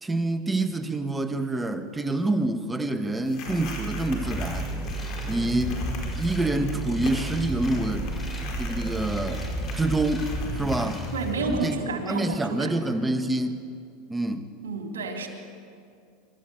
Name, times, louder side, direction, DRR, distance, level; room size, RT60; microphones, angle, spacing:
voice 1, 0.0-4.7 5.3-5.9 6.2-8.1 8.6-9.5 9.8-11.0 11.5-11.8 12.1-13.6 14.1-14.5, right 2 dB, 10° right, 9 dB, 1.5 m, -27 dB
sound 1, 3.2-11.4, left 3 dB, 50° left, 4.7 m, -42 dB
sound 2, 3.5-10.6, right 4 dB, 80° left, 5.5 m, -34 dB
sound 3, 4.2-11.6, left 2 dB, 15° left, 4.0 m, -35 dB
voice 2, 11.1-12.7 14.6-15.3, right 4 dB, 85° right, 3 dB, 3.4 m, -30 dB
25.0 x 13.5 x 8.2 m, 2.3 s
hypercardioid pair, 100°, 0 cm